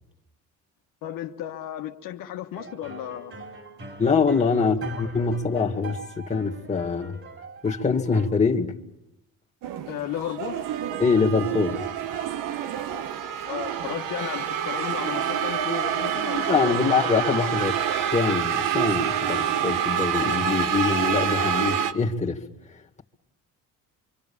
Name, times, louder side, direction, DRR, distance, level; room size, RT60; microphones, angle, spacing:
voice 1, 1.0-3.3 4.6-4.7 9.9-10.6 13.4-16.9 17.2-17.5, left 11 dB, 80° left, 1.4 m, -34 dB
sound 1, 2.5-8.3, right 3 dB, 40° right, 3.8 m, -41 dB
voice 2, 4.0-7.2 7.6-8.8 11.0-11.9 16.3-17.7 18.1-22.4, left 5 dB, 20° left, 2.2 m, -24 dB
sound 2, 9.6-21.9, right 9 dB, 75° right, 1.3 m, -27 dB
26.5 x 24.0 x 7.2 m
cardioid pair, 90°, 33 cm